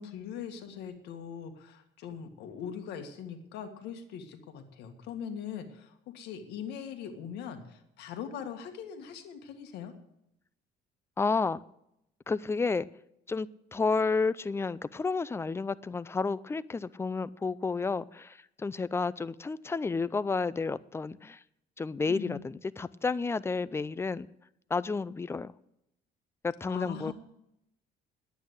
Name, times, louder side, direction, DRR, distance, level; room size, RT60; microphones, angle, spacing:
voice 1, 0.0-9.9 22.1-22.4 26.6-27.1, left 8 dB, 80° left, 6 dB, 1.8 m, -41 dB
voice 2, 11.2-11.6 12.3-12.8 13.3-21.4 21.8-24.3 24.7-25.5 26.4-27.1, left 4 dB, 15° left, 18 dB, 0.4 m, -31 dB
10.0 x 8.8 x 8.1 m, 0.80 s
cardioid pair, 110°, 17 cm